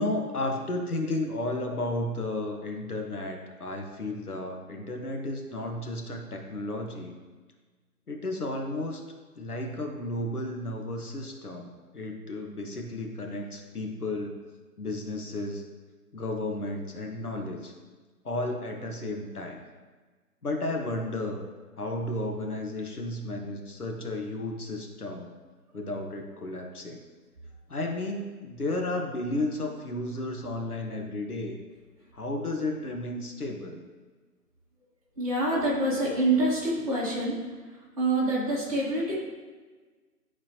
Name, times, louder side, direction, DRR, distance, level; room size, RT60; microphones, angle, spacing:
voice 1, 0.0-7.1 8.1-9.0 9.3-11.7 11.9-14.3 14.8-15.6 16.1-17.7 18.2-19.6 20.4-21.4 21.8-25.3 25.7-27.0 27.7-31.6 32.1-33.8, left 2 dB, 70° left, 2 dB, 1.3 m, -33 dB
voice 2, 35.2-37.3 37.7-39.2, right 2 dB, 25° right, -10 dB, 2.1 m, -26 dB
12.0 x 4.2 x 3.0 m, 1.4 s
figure-of-eight pair, 170°, 47 cm